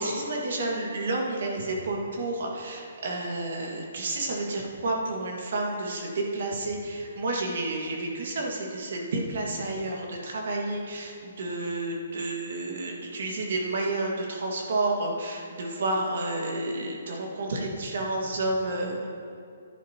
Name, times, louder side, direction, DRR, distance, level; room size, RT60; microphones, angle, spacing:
voice 1, 0.0-19.1, right 2 dB, 60° right, 0 dB, 1.8 m, -30 dB
14.5 x 10.0 x 2.9 m, 2.4 s
hypercardioid pair, 165°, 0 cm